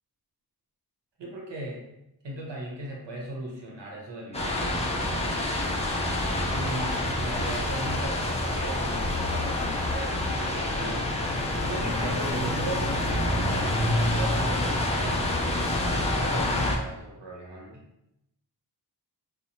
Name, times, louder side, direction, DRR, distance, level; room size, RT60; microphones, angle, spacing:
voice 1, 1.2-1.8 2.2-5.7 6.5-11.0 11.6-15.4 15.9-17.8, right 1 dB, 75° right, -2 dB, 0.8 m, -38 dB
sound 1, 4.3-16.8, left 1 dB, 15° left, 0.4 m, -27 dB
2.6 x 2.0 x 2.8 m, 0.86 s
wide cardioid pair, 70°, 43 cm